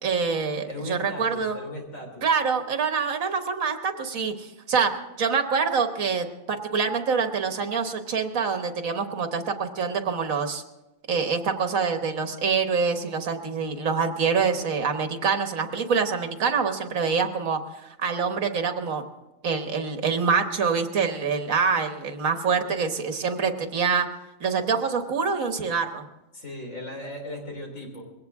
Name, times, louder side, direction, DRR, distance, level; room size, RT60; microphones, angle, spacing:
voice 1, 0.0-1.6 2.2-10.6 11.1-17.6 18.0-19.0 19.4-24.1 24.4-26.0, right 5 dB, 75° right, 6 dB, 1.6 m, -25 dB
voice 2, 0.7-2.3 26.3-28.0, left 1 dB, 75° left, 2 dB, 3.8 m, -37 dB
21.0 x 17.0 x 3.6 m, 1.0 s
omnidirectional pair, 1.4 m